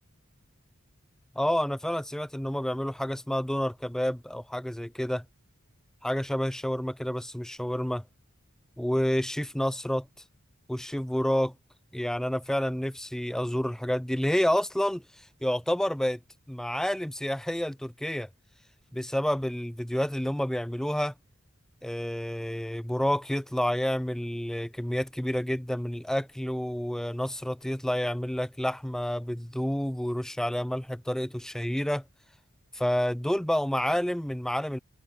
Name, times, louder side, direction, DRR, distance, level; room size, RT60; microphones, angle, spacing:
voice 1, 1.4-5.2 6.0-8.0 8.8-10.1 10.7-11.5 11.9-16.2 16.5-18.3 18.9-21.1 21.8-32.0 32.7-34.8, equal, ahead, 0.3 m, -29 dB
head